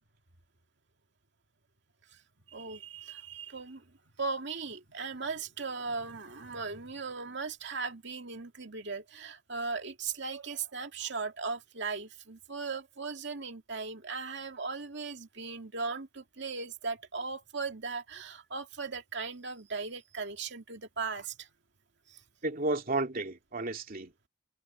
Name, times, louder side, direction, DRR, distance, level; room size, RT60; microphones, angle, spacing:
voice 1, 2.5-3.8 4.2-21.5 22.1-22.2, right 4 dB, 65° right, 2.4 m, -38 dB
voice 2, 22.4-24.3, right 2 dB, 50° right, 2.7 m, -32 dB
head